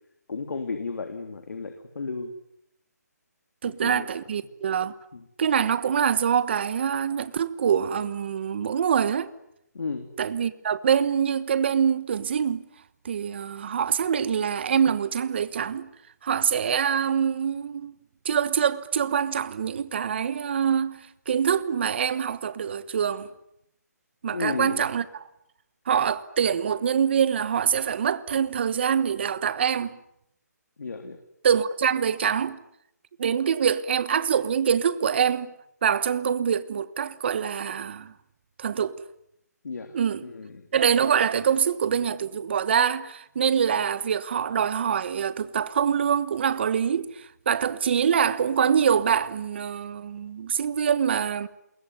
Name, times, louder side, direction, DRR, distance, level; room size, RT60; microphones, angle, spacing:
voice 1, 0.3-2.3 3.8-4.1 5.1-5.2 9.7-10.1 24.3-24.8 30.8-31.2 39.6-40.7, left 4 dB, 75° left, 3.4 m, -33 dB
voice 2, 3.6-4.9 5.4-9.3 10.2-12.6 13.0-15.9 16.2-18.0 18.2-21.0 21.3-23.3 24.2-25.2 25.9-30.0 31.4-32.6 33.2-35.5 35.8-38.1 38.6-39.0 39.9-40.2 40.7-51.5, right 7 dB, 40° right, 1.2 m, -25 dB
27.5 x 21.5 x 9.9 m
hypercardioid pair, 170°, 9 cm